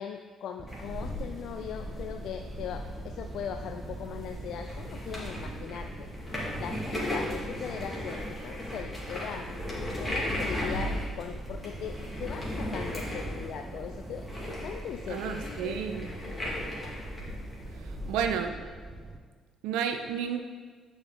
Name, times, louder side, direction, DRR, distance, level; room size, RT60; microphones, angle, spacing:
voice 1, 0.0-6.1 6.6-9.5 10.0-14.3 14.6-15.8 16.3-17.0, left 8 dB, 55° left, 5 dB, 0.3 m, -40 dB
sound 1, 0.6-19.2, right 2 dB, 35° right, 0.8 m, -43 dB
sound 2, 0.7-18.3, left 1 dB, 15° left, 2.4 m, -37 dB
voice 2, 15.1-16.1 17.8-18.6 19.6-20.4, right 8 dB, 65° right, 7 dB, 0.4 m, -31 dB
9.5 x 4.6 x 4.2 m, 1.5 s
figure-of-eight pair, 45°, 0 cm